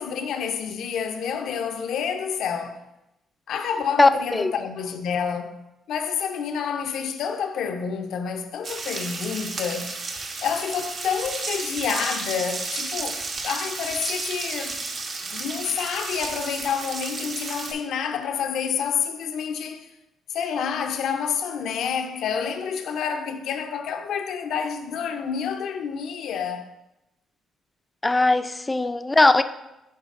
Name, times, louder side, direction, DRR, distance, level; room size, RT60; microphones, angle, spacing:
voice 1, 0.0-2.8 3.5-10.0 10.4-14.8 15.2-19.9 20.3-26.7 28.8-29.0, left 7 dB, 75° left, 0.5 m, -28 dB
voice 2, 4.0-4.5 28.0-29.4, left 2 dB, 20° left, 0.3 m, -19 dB
sound 1, 8.6-17.7, right 3 dB, 60° right, 1.0 m, -32 dB
11.0 x 3.9 x 2.5 m
cardioid pair, 90°, 0 cm